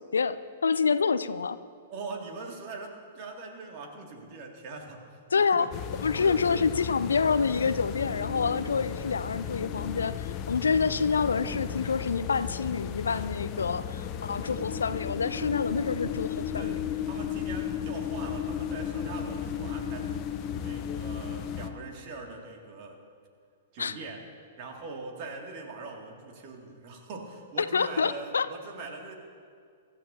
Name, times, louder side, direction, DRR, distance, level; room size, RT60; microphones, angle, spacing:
voice 1, 0.6-1.6 5.3-5.7 6.0-16.8 23.8-23.9 27.7-28.5, left 5 dB, 70° left, 14 dB, 0.4 m, -27 dB
voice 2, 1.9-5.7 6.1-6.9 16.5-23.0 23.7-24.3 24.6-29.1, right 3 dB, 40° right, 1 dB, 2.4 m, -42 dB
sound 1, 5.7-21.7, left 8 dB, 30° left, 0.8 m, -34 dB
24.0 x 13.5 x 2.8 m, 2.2 s
figure-of-eight pair, 105°, 0 cm